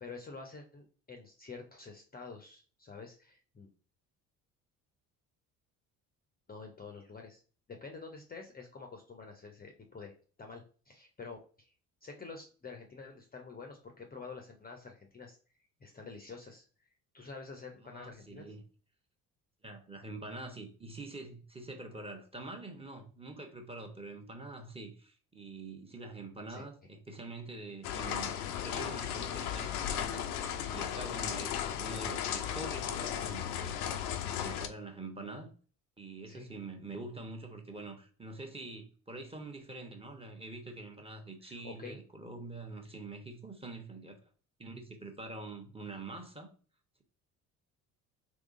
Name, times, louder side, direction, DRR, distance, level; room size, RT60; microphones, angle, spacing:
voice 1, 0.0-3.7 6.5-7.4 7.7-10.1 10.4-11.7 12.0-15.4 15.8-16.7 17.1-18.5 26.5-26.7 36.3-36.5 41.4-42.0, left 4 dB, 20° left, 0.6 m, -48 dB
voice 2, 17.9-18.6 19.6-28.3 28.6-33.8 34.3-35.5 36.0-44.2 44.6-46.5, right 2 dB, 15° right, 0.9 m, -45 dB
sound 1, 27.8-34.7, left 9 dB, 80° left, 0.5 m, -36 dB
3.6 x 3.0 x 2.5 m
hypercardioid pair, 55°, 44 cm